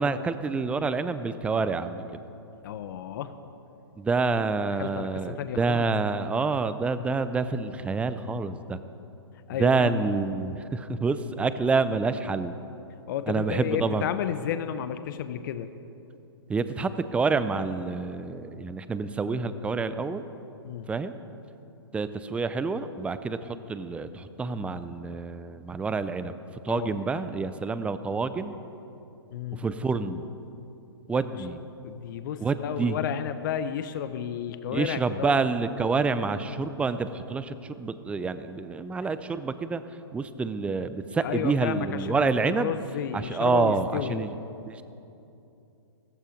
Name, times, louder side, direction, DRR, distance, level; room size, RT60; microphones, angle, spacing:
voice 1, 0.0-2.0 4.0-8.8 9.6-12.5 13.3-14.1 16.5-20.2 20.9-21.1 21.9-26.4 26.6-28.6 29.5-30.2 31.1-31.6 32.4-33.0 34.7-39.8 40.1-42.7 43.1-44.3 44.7-44.8, right 4 dB, 10° right, 12 dB, 0.5 m, -27 dB
voice 2, 2.6-3.3 4.5-5.9 9.5-9.9 13.1-15.7 20.6-20.9 26.7-26.9 29.3-29.6 31.8-35.4 41.2-44.2, left 9 dB, 50° left, 11 dB, 0.8 m, -32 dB
15.5 x 15.0 x 5.2 m, 2.8 s
hypercardioid pair, 125°, 14 cm